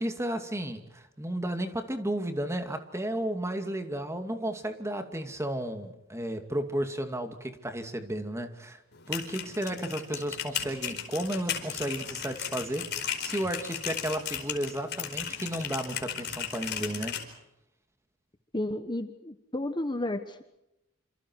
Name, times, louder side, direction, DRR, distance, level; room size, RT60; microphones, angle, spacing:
voice 1, 0.0-8.8 9.1-17.2, right 1 dB, 15° right, 6 dB, 2.5 m, -33 dB
sound 1, 8.9-17.2, left 8 dB, 55° left, 4.7 m, -36 dB
voice 2, 18.5-20.4, left 1 dB, 25° left, 8 dB, 1.3 m, -32 dB
28.5 x 27.5 x 4.7 m, 0.89 s
head